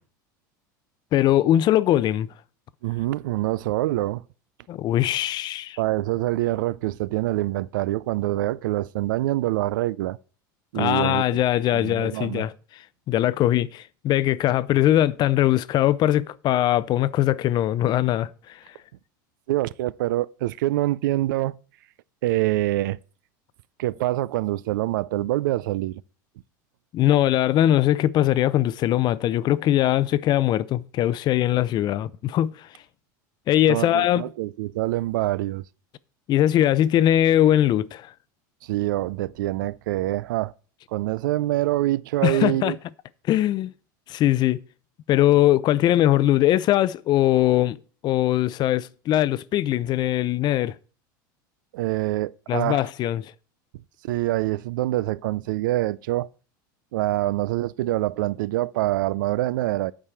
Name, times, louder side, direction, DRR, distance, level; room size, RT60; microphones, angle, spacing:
voice 1, 1.1-2.3 4.7-5.8 10.7-12.5 13.1-18.6 26.9-32.7 33.5-34.2 36.3-38.1 42.2-42.7 43.3-43.7 44.1-44.6 45.1-47.8 48.0-50.7 52.5-53.3, left 13 dB, 45° left, 0.6 m, -21 dB
voice 2, 2.8-4.2 5.8-10.2 10.7-11.4 11.7-12.5 19.5-21.5 22.2-23.0 23.8-26.0 33.7-35.6 38.6-40.5 40.9-42.8 51.7-52.8 54.0-56.3 56.9-59.9, right 16 dB, 80° right, 0.4 m, -25 dB
8.9 x 4.7 x 7.0 m
supercardioid pair, 105°, 10 cm